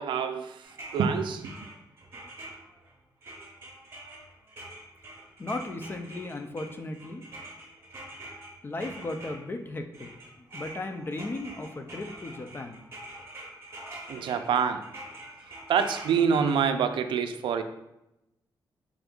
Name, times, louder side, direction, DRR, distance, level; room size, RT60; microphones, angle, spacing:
voice 1, 0.0-1.5 14.1-14.9 15.7-17.6, right 7 dB, 90° right, 9 dB, 0.3 m, -26 dB
sound 1, 0.6-2.9 3.2-9.7 9.9-16.6, right 1 dB, 30° right, 0.9 m, -45 dB
voice 2, 5.4-7.2 8.6-10.1 10.4-12.8, left 2 dB, 25° left, 6 dB, 0.4 m, -36 dB
5.1 x 3.5 x 2.4 m, 0.91 s
wide cardioid pair, 145°, 8 cm